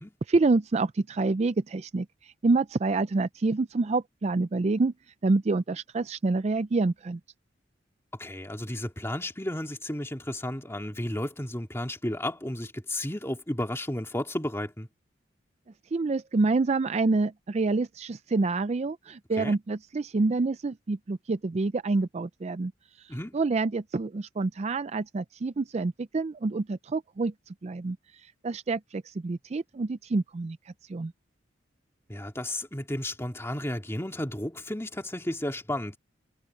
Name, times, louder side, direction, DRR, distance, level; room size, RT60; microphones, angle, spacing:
voice 1, 0.3-4.9 5.2-7.2 15.9-22.7 23.0-27.3 27.6-28.0 28.4-30.6 30.9-31.1, right 3 dB, 35° right, 0.4 m, -27 dB
voice 2, 8.2-14.9 19.4-19.6 23.1-23.4 32.1-36.0, left 1 dB, 15° left, 2.4 m, -33 dB
head